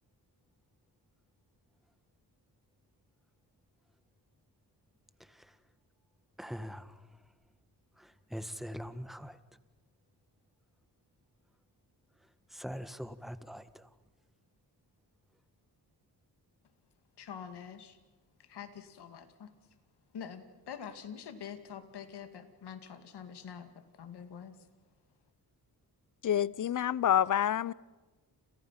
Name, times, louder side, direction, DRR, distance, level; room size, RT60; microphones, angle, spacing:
voice 1, 6.4-7.0 8.0-9.4 12.5-13.9, equal, ahead, 1.5 m, -43 dB
voice 2, 17.2-18.0 18.4-19.5 20.1-23.7 24.0-24.6, left 7 dB, 80° left, 2.5 m, -45 dB
voice 3, 26.2-27.7, left 10 dB, 50° left, 0.7 m, -27 dB
29.5 x 28.0 x 5.9 m
cardioid pair, 95°, 39 cm